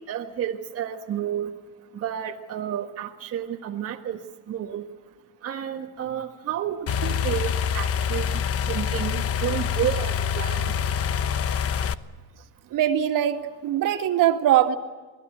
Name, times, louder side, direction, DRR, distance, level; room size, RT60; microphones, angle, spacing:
voice 1, 0.0-1.5 1.9-4.2 4.5-4.9 5.4-10.7, right 10 dB, 40° right, 1 dB, 1.6 m, -31 dB
sound 1, 6.9-11.9, left 7 dB, 40° left, 1.0 m, -26 dB
voice 2, 12.7-14.8, right 11 dB, 60° right, 6 dB, 2.4 m, -22 dB
29.0 x 19.5 x 7.9 m, 1.3 s
cardioid pair, 125°, 37 cm